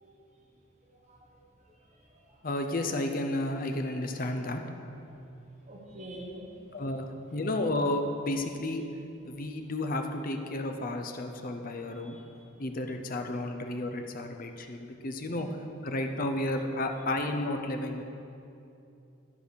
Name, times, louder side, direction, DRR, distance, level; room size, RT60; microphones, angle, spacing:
voice 1, 2.4-4.6 6.7-8.8 9.2-12.2 12.6-15.5 15.8-18.0, left 1 dB, 45° left, 5 dB, 0.6 m, -32 dB
voice 2, 5.7-6.5 12.0-12.2 15.3-15.5, right 1 dB, 35° right, -2 dB, 1.3 m, -44 dB
13.0 x 4.9 x 5.0 m, 2.7 s
head